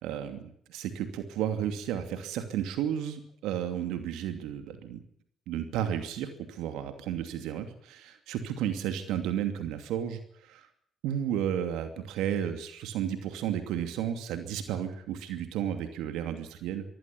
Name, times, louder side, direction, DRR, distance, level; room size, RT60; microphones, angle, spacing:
voice 1, 0.0-5.0 5.5-10.7 11.0-16.8, right 10 dB, 75° right, 8 dB, 2.6 m, -33 dB
23.5 x 15.5 x 8.6 m, 0.67 s
hypercardioid pair, 45°, 0 cm